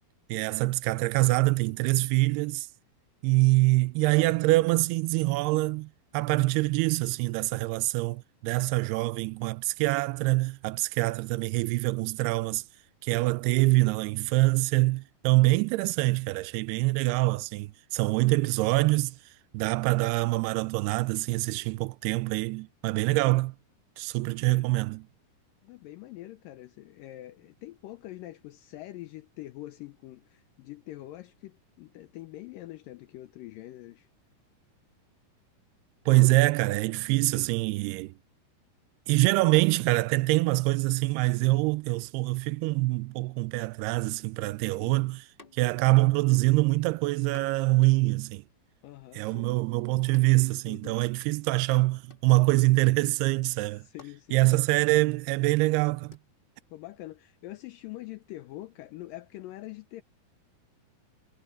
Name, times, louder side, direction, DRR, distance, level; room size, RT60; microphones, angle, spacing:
voice 1, 0.3-2.7 3.2-12.6 13.0-19.2 19.5-23.6 24.0-25.1 36.1-38.1 39.1-45.3 45.5-48.4 49.2-53.9 54.3-56.2, right 21 dB, 85° right, 2.6 m, -25 dB
voice 2, 24.2-24.7 25.6-34.1 44.8-45.1 48.8-49.5 50.7-51.0 53.6-54.4 56.7-60.0, left 16 dB, 80° left, 2.0 m, -44 dB
sound 1, 45.4-46.0 46.3-46.4 47.3-51.3 51.6-52.8 53.5-53.6 53.9-56.2, left 3 dB, 40° left, 0.7 m, -58 dB
omnidirectional pair, 4.6 m